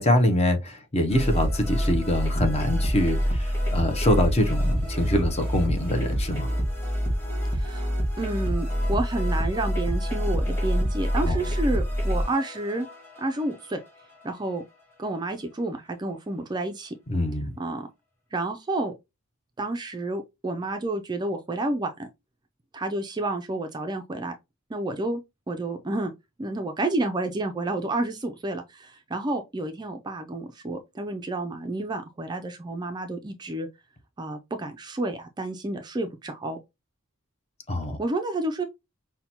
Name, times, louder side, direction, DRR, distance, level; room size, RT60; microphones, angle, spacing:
voice 1, 0.0-6.5 11.2-11.4 17.1-17.5 37.7-38.0, left 1 dB, 30° left, 0.6 m, -24 dB
sound 1, 1.1-14.2, equal, 10° left, 1.5 m, -26 dB
voice 2, 7.5-12.9 13.2-13.8 14.2-14.6 15.0-17.0 17.6-17.9 18.3-18.9 19.6-22.1 22.7-24.3 24.7-25.2 25.5-26.1 26.4-33.7 34.2-36.6 38.0-38.6, right 2 dB, 20° right, 0.3 m, -30 dB
5.5 x 2.2 x 2.8 m
head